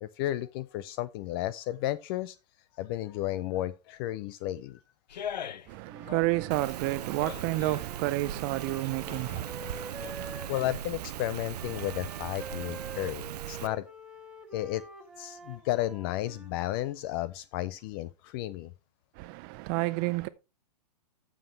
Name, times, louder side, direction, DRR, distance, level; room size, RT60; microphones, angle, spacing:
voice 1, 0.0-2.4 2.8-4.8 10.5-13.8 14.5-14.8 15.2-18.7, left 15 dB, 35° left, 0.4 m, -33 dB
sound 1, 5.1-5.8 6.1-7.8 8.4-10.5 10.8-10.9, left 9 dB, 85° left, 0.8 m, -42 dB
voice 2, 5.7-10.4 19.2-20.3, right 19 dB, 35° right, 0.4 m, -31 dB
Wind instrument woodwind instrument, 5.8-10.9 11.5-16.5, right 2 dB, 5° right, 1.7 m, -47 dB
Rain, 6.5-13.7, right 11 dB, 70° right, 0.7 m, -39 dB
12.0 x 7.2 x 3.2 m
hypercardioid pair, 135°, 21 cm